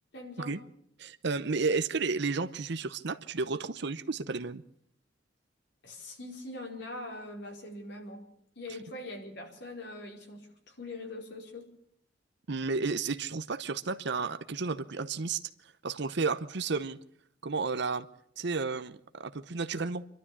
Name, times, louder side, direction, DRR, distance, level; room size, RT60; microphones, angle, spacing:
voice 1, 0.1-0.6 5.8-8.3 8.5-11.7, left 2 dB, 65° left, 4.8 m, -42 dB
voice 2, 1.0-4.6 12.5-15.4 15.8-17.0 17.4-18.1 18.4-20.1, right 4 dB, 65° right, 0.8 m, -32 dB
26.0 x 12.5 x 8.5 m
head